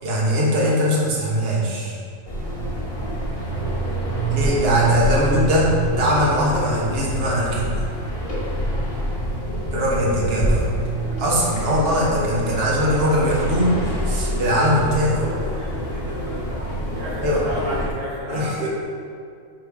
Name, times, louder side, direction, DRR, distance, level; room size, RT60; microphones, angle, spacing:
voice 1, 0.0-2.0 4.3-7.8 9.7-10.6 11.2-15.2 17.2-17.4 18.3-18.7, equal, 50° right, -5 dB, 1.5 m, -21 dB
sound 1, 2.3-17.9, right 1 dB, 45° left, 1.6 m, -26 dB
voice 2, 15.0-16.6 16.9-18.7, equal, 70° right, -5 dB, 1.5 m, -33 dB
6.1 x 5.1 x 4.9 m, 2.3 s
omnidirectional pair, 1.4 m